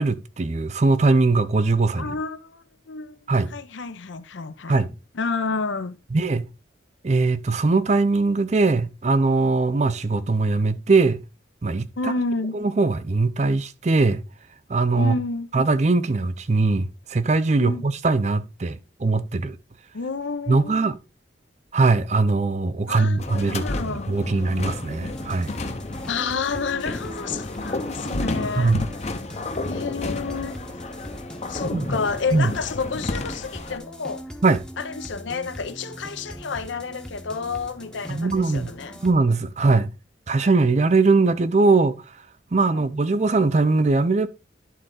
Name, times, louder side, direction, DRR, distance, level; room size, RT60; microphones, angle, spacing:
voice 1, 0.0-2.1 3.3-3.5 4.7-4.9 6.1-6.4 7.0-11.2 11.6-11.9 12.5-14.2 14.7-15.2 15.5-19.6 20.5-21.0 21.7-25.5 28.6-28.8 31.7-31.9 32.3-32.5 34.4-34.6 38.1-38.7 39.0-39.9 40.3-42.0 42.5-44.3, right 3 dB, 35° right, 0.5 m, -21 dB
voice 2, 2.0-4.8 5.1-6.0 12.0-12.6 15.0-15.5 17.6-17.8 19.9-21.0 22.9-24.1 26.1-28.8 29.7-30.6 31.5-34.2 34.8-39.0 42.7-42.9, left 4 dB, 80° left, 0.7 m, -30 dB
sound 1, 23.2-33.8, left 2 dB, 35° left, 0.7 m, -31 dB
sound 2, 25.1-39.1, equal, 5° left, 0.7 m, -40 dB
11.0 x 3.8 x 3.8 m
head